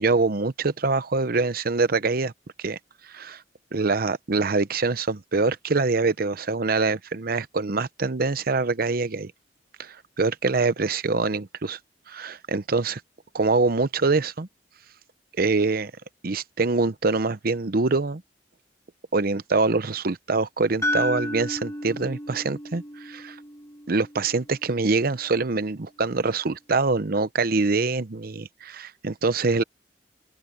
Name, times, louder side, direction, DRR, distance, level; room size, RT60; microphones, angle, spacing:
voice 1, 0.0-2.3 2.6-2.8 3.1-3.4 3.7-9.3 9.8-11.8 12.1-13.0 13.3-14.5 15.4-15.9 16.2-18.2 19.1-23.4 23.9-29.6, right 3 dB, 55° right, 0.8 m, -24 dB
sound 1, 20.8-24.9, left 1 dB, 15° left, 1.4 m, -32 dB
open air
head